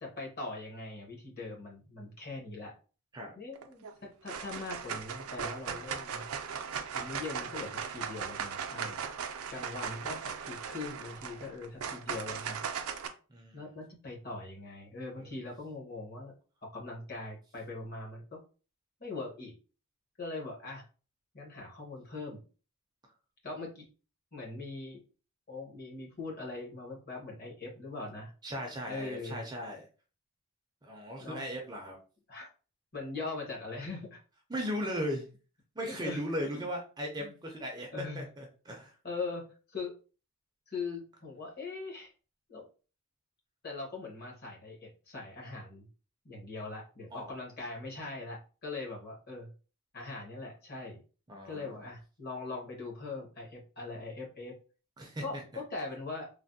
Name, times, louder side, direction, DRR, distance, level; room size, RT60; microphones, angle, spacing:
voice 1, 0.0-2.7 3.3-6.2 6.9-9.1 9.5-12.6 13.5-16.3 16.7-18.4 19.0-19.5 20.2-20.8 21.3-22.4 23.4-23.8 24.3-25.0 25.5-28.3 28.9-29.4 31.2-31.4 32.3-32.5 32.9-34.2 35.9-36.7 37.2-37.3 37.9-38.2 38.7-38.8 39.0-40.0 40.7-42.1 42.5-42.6 43.6-45.9 46.2-49.5 49.9-51.0 51.4-54.5 55.2-56.3, left 3 dB, 45° left, -1 dB, 1.0 m, -41 dB
sound 1, 3.6-3.9 4.3-13.1, right 7 dB, 75° right, 0.4 m, -38 dB
voice 2, 13.3-13.7 15.2-15.3 28.4-29.8 30.8-32.0 34.5-35.3 35.8-38.9 47.1-47.3 51.3-51.9 55.0-55.4, equal, 20° right, 1 dB, 0.4 m, -37 dB
3.3 x 2.1 x 2.6 m, 0.36 s
head